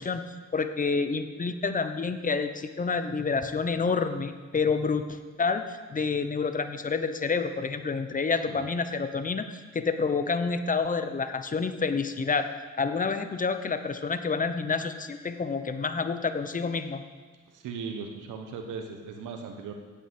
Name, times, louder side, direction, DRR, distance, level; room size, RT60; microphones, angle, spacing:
voice 1, 0.0-12.5 12.8-17.0, left 4 dB, 25° left, 9 dB, 0.9 m, -28 dB
voice 2, 17.5-19.7, right 5 dB, 85° right, 4 dB, 1.2 m, -38 dB
8.4 x 8.3 x 7.8 m, 1.4 s
cardioid pair, 90°, 30 cm